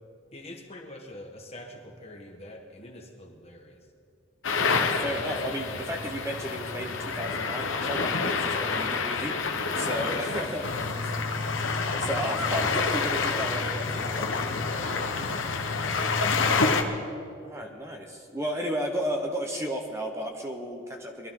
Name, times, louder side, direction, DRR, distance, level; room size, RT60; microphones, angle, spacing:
voice 1, 0.3-3.8 10.0-11.3 12.2-12.5 14.7-17.0, left 1 dB, 30° left, 2 dB, 1.6 m, -44 dB
sound 1, 4.4-16.8, left 4 dB, 85° left, 1.2 m, -28 dB
voice 2, 4.7-9.4 9.7-10.9 11.7-14.3 17.4-21.3, equal, 15° right, 2 dB, 1.0 m, -33 dB
22.0 x 13.0 x 3.8 m, 2.4 s
head